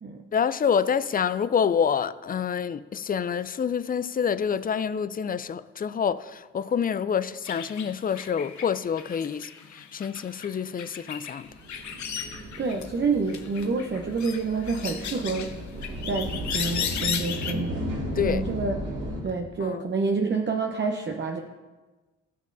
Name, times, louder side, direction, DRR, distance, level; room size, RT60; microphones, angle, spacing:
voice 1, 0.3-11.5 18.2-18.4 19.6-19.8, left 7 dB, 25° left, 0.4 m, -27 dB
sound 1, 7.4-13.0 13.3-17.5, left 7 dB, 60° left, 1.0 m, -35 dB
sound 2, 11.5-19.2, equal, 60° right, 2.4 m, -35 dB
voice 2, 12.6-15.7 16.0-17.8 18.2-18.8 19.2-21.4, right 4 dB, 35° right, 0.8 m, -28 dB
15.0 x 6.3 x 2.6 m
hypercardioid pair, 50°, 33 cm